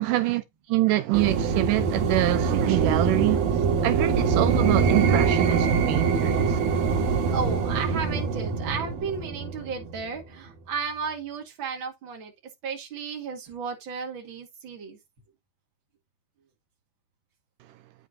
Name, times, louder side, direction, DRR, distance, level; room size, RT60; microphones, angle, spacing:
voice 1, 0.0-6.6 6.9-7.0, right 17 dB, 90° right, 1.9 m, -26 dB
sound 1, 1.1-10.2, right 5 dB, 70° right, 3.5 m, -24 dB
voice 2, 7.3-12.3 12.6-15.0, right 5 dB, 40° right, 2.2 m, -33 dB
9.3 x 7.7 x 2.6 m
omnidirectional pair, 4.5 m